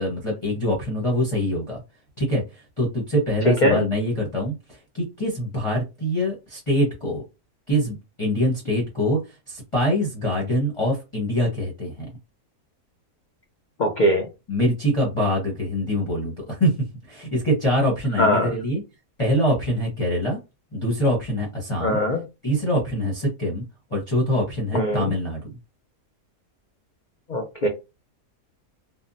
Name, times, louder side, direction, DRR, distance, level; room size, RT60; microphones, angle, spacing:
voice 1, 0.0-1.8 2.2-2.4 2.8-4.5 4.9-7.2 7.7-9.2 9.5-12.0 14.5-18.8 19.2-20.4 20.7-22.0 22.4-23.6 23.9-25.5, equal, 25° left, 0.8 m, -24 dB
voice 2, 3.4-3.8 13.8-14.3 18.2-18.5 21.8-22.2 24.7-25.1 27.3-27.7, equal, 85° left, 0.4 m, -21 dB
3.5 x 2.0 x 2.6 m
omnidirectional pair, 1.5 m